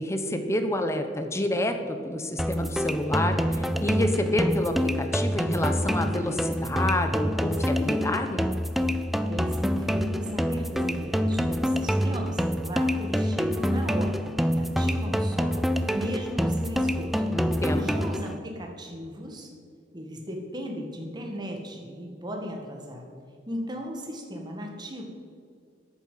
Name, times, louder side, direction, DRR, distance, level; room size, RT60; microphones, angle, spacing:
voice 1, 0.0-8.4 17.3-17.9, left 1 dB, 15° left, 6 dB, 1.0 m, -28 dB
sound 1, 2.4-18.4, equal, ahead, 0.4 m, -26 dB
voice 2, 9.3-17.3 17.7-19.5 19.9-23.1 23.5-25.0, equal, 25° right, 1 dB, 1.9 m, -36 dB
11.0 x 8.9 x 7.6 m, 2.2 s
head